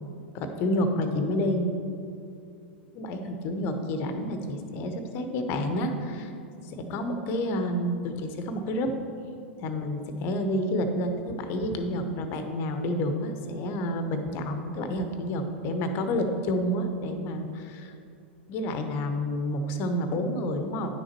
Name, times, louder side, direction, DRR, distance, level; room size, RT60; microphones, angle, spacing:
voice 1, 0.3-1.7 2.9-6.3 6.6-8.9 9.6-17.9 18.5-21.0, left 1 dB, 40° left, 7 dB, 0.9 m, -29 dB
9.8 x 6.4 x 4.4 m, 2.4 s
figure-of-eight pair, 95°, 6 cm